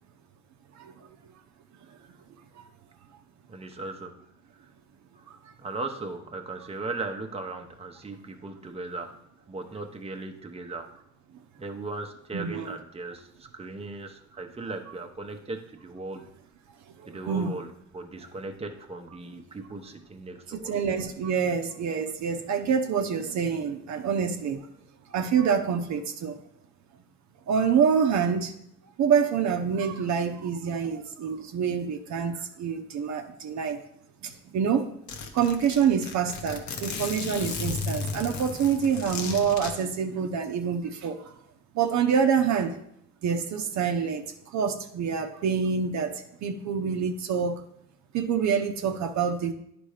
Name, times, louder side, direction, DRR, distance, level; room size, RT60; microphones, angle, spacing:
voice 1, 3.5-4.2 5.6-9.2 9.5-10.9 11.6-13.2 13.5-16.2 17.1-17.7 17.9-20.7, right 3 dB, 20° right, 4 dB, 0.8 m, -37 dB
voice 2, 12.3-12.8 17.0-17.5 20.5-24.7 25.1-26.4 27.5-28.5 29.0-33.8 34.2-34.9 35.3-41.2 41.7-42.8 43.2-44.2 44.5-47.6 48.1-49.5, right 7 dB, 70° right, 5 dB, 0.8 m, -26 dB
Zipper (clothing), 34.3-34.4 34.6-34.7 35.1-39.7, left 4 dB, 65° left, 1.1 m, -34 dB
9.8 x 3.4 x 4.9 m, 0.74 s
cardioid pair, 95°, 30 cm